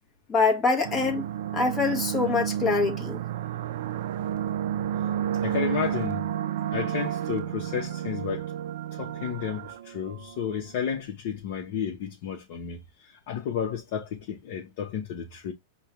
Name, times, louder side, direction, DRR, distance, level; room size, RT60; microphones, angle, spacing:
voice 1, 0.3-1.2 1.5-3.2, left 4 dB, 15° left, 1.1 m, -24 dB
sound 1, 0.8-10.6, right 10 dB, 65° right, 0.4 m, -31 dB
voice 2, 5.4-6.3 6.7-8.5 8.9-15.5, left 8 dB, 55° left, 0.9 m, -32 dB
5.3 x 2.3 x 3.0 m
supercardioid pair, 150°, 0 cm